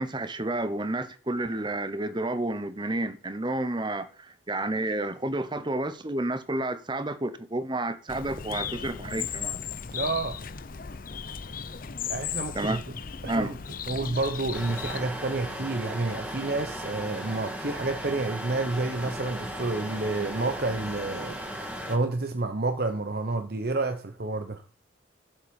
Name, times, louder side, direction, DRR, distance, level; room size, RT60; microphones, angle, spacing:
voice 1, 0.0-9.6 12.5-12.8 13.3-13.5, right 2 dB, 25° right, 0.9 m, -30 dB
Bird, 8.1-15.0, left 7 dB, 45° left, 0.7 m, -36 dB
voice 2, 9.9-10.4 12.1-12.8 13.2-13.6 13.9-24.6, right 3 dB, 50° right, 0.9 m, -30 dB
sound 1, 14.5-22.0, equal, 5° right, 2.2 m, -36 dB
10.5 x 7.5 x 5.4 m
head